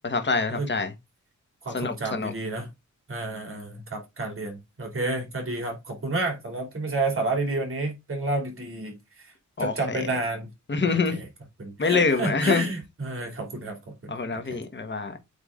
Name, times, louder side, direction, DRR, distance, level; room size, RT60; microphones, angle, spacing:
voice 1, 0.0-0.9 1.7-2.3 9.6-10.0 10.7-11.2 11.8-12.7 14.1-15.2, left 4 dB, 35° left, 1.4 m, -25 dB
voice 2, 1.6-2.7 3.1-9.3 9.6-10.5 10.8-11.3 11.6-14.6, right 2 dB, 45° right, 2.8 m, -30 dB
8.4 x 3.6 x 3.7 m
wide cardioid pair, 135°, 31 cm